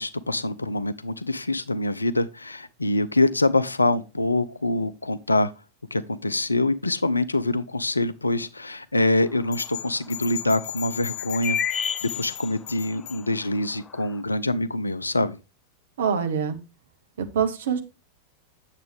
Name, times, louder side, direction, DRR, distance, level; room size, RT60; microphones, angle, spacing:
voice 1, 0.0-5.5 5.9-15.4, left 2 dB, 80° left, 0.4 m, -25 dB
sound 1, 9.3-9.4 9.6-9.7 11.1-12.7 13.2-13.3 13.6-14.1, left 7 dB, 20° left, 0.6 m, -29 dB
sound 2, 9.5-13.2, left 11 dB, 55° left, 4.9 m, -36 dB
voice 2, 16.0-16.6 17.2-17.8, right 7 dB, 65° right, 1.1 m, -25 dB
8.7 x 7.3 x 3.3 m
figure-of-eight pair, 90°, 0 cm